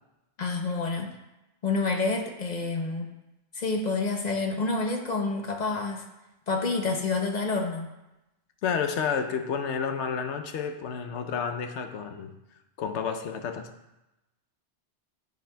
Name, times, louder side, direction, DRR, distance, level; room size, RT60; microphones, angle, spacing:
voice 1, 0.4-1.2 1.6-3.1 3.5-6.1 6.5-7.9, left 3 dB, 45° left, 3 dB, 0.7 m, -28 dB
voice 2, 8.6-12.3 12.8-13.7, left 6 dB, 90° left, 6 dB, 0.9 m, -30 dB
9.9 x 5.1 x 2.2 m, 0.95 s
omnidirectional pair, 1.1 m